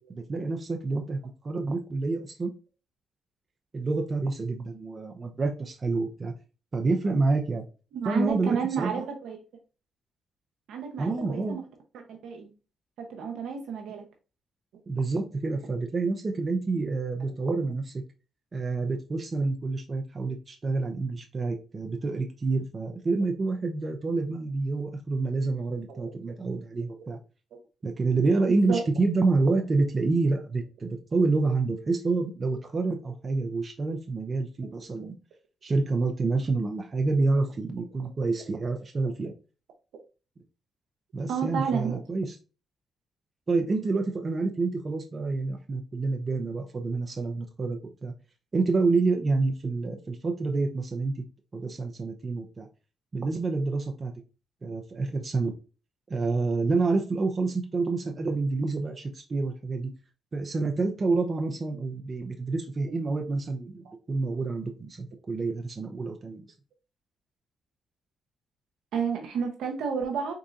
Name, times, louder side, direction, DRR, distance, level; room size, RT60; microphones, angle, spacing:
voice 1, 0.1-1.2 1.4-2.5 3.7-6.3 6.7-7.6 8.1-8.9 11.0-11.6 14.9-18.0 18.5-27.2 27.8-35.1 35.6-39.3 41.1-42.3 43.5-48.1 48.5-51.2 51.5-52.7 53.1-54.1 54.6-55.5 56.1-59.9 60.3-66.5, right 3 dB, 40° right, 3 dB, 0.6 m, -28 dB
voice 2, 7.9-9.4 10.7-11.6 12.1-12.5 13.0-14.0 25.9-26.1 28.7-28.8 41.3-42.0 63.9-64.0 68.9-70.3, right 6 dB, 80° right, 3 dB, 0.7 m, -31 dB
3.8 x 3.8 x 2.4 m, 0.33 s
supercardioid pair, 65°, 0 cm